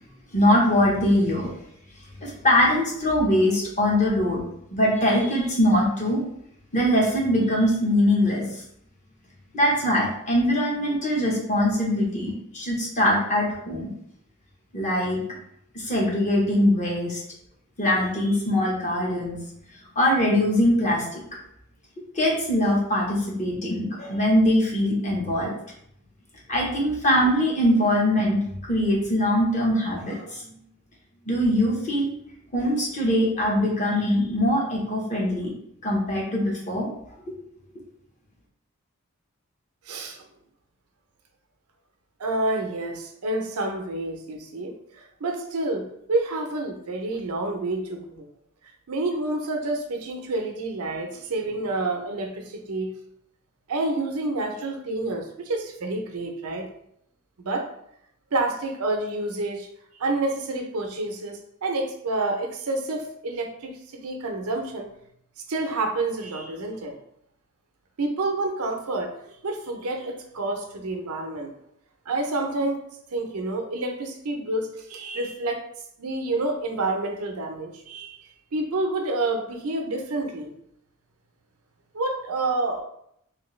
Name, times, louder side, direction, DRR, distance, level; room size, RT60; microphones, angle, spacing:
voice 1, 0.3-1.6 2.2-4.4 4.7-6.2 6.7-8.6 9.5-13.9 14.7-15.2 15.7-17.2 17.8-19.4 19.9-21.2 22.1-25.5 26.5-28.4 28.7-30.5 31.3-32.1 32.5-35.5 35.8-36.9, left 1 dB, 35° left, -4 dB, 0.9 m, -22 dB
voice 2, 39.9-40.2 42.2-48.3 48.9-52.9 53.7-56.7 57.4-57.7 58.3-59.7 60.0-64.9 65.5-66.9 68.0-71.5 72.1-72.8 73.1-75.6 76.0-80.5 81.9-82.8, right 2 dB, 90° right, 3 dB, 0.6 m, -28 dB
3.2 x 2.8 x 3.1 m, 0.73 s
head